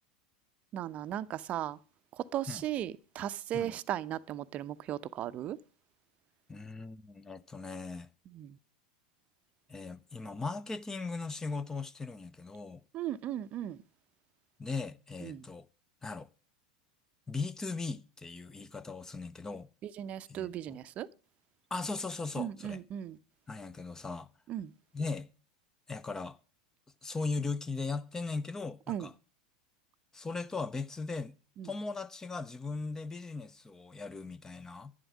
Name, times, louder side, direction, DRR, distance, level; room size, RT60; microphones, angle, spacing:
voice 1, 0.7-1.8 2.1-5.6 8.3-8.6 12.9-13.8 15.2-15.5 19.8-21.1 22.4-23.2 24.5-24.7 28.9-29.1 31.6-31.7, right 11 dB, 40° right, 0.7 m, -37 dB
voice 2, 6.5-8.1 9.7-12.8 14.6-15.7 16.0-16.3 17.3-19.7 20.3-20.8 21.7-22.8 23.5-24.3 24.9-25.3 25.9-26.4 27.0-29.1 30.1-31.4 31.6-34.9, left 4 dB, 15° left, 0.8 m, -38 dB
11.5 x 11.0 x 6.2 m
figure-of-eight pair, 85°, 4 cm